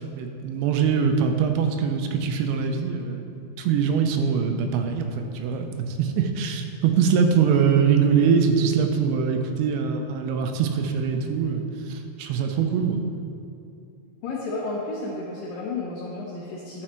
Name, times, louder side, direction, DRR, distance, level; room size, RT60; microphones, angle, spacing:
voice 1, 0.0-3.3 3.6-13.0, right 6 dB, 85° right, 5 dB, 3.0 m, -23 dB
voice 2, 14.2-16.8, left 3 dB, 75° left, -4 dB, 2.0 m, -32 dB
12.5 x 6.3 x 4.4 m, 2.6 s
omnidirectional pair, 5.1 m